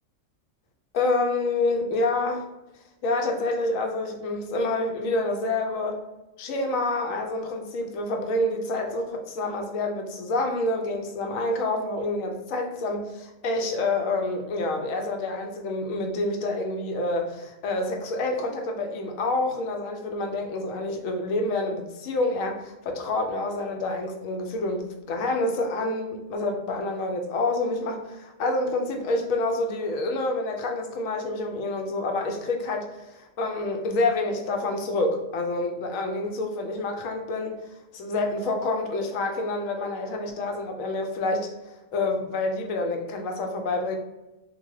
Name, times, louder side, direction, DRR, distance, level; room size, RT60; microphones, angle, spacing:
voice 1, 0.9-2.5 3.0-6.0 6.4-37.6 37.9-41.5 41.9-44.0, left 2 dB, 85° left, 4 dB, 1.0 m, -28 dB
2.7 x 2.2 x 3.0 m, 1.0 s
omnidirectional pair, 1.4 m